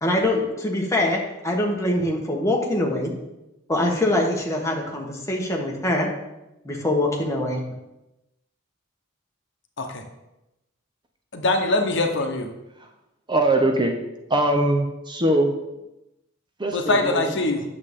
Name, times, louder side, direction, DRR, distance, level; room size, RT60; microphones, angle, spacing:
voice 1, 0.0-3.1 3.7-6.1 6.6-7.6, left 1 dB, 15° left, -1 dB, 1.2 m, -23 dB
voice 2, 11.3-12.5 16.7-17.6, left 2 dB, 60° left, 4 dB, 0.9 m, -23 dB
voice 3, 13.3-14.0 14.3-15.5 16.6-17.3, right 1 dB, 20° right, 4 dB, 0.7 m, -21 dB
8.7 x 6.9 x 3.6 m, 0.94 s
head